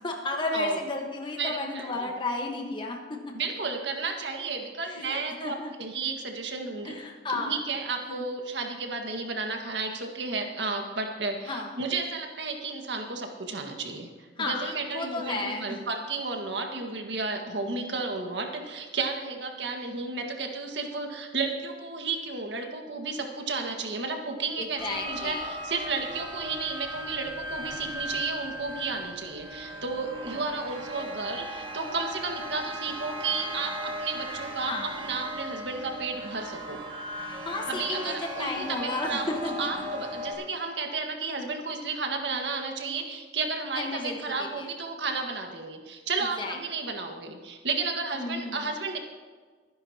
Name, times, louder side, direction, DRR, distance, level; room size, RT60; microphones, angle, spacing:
voice 1, 0.0-3.2 4.9-5.7 6.8-7.6 8.1-8.2 11.4-11.7 14.4-15.8 24.6-25.5 34.7-35.0 37.4-39.8 43.7-44.7 46.2-46.6 48.1-48.7, left 2 dB, 25° left, 1 dB, 1.3 m, -33 dB
voice 2, 1.4-2.1 3.3-7.0 7.3-14.1 14.4-36.8 37.7-49.0, right 4 dB, 70° right, 3 dB, 1.7 m, -33 dB
sound 1, 24.8-40.3, equal, 30° right, 3.3 m, -37 dB
23.0 x 10.5 x 2.9 m, 1.5 s
head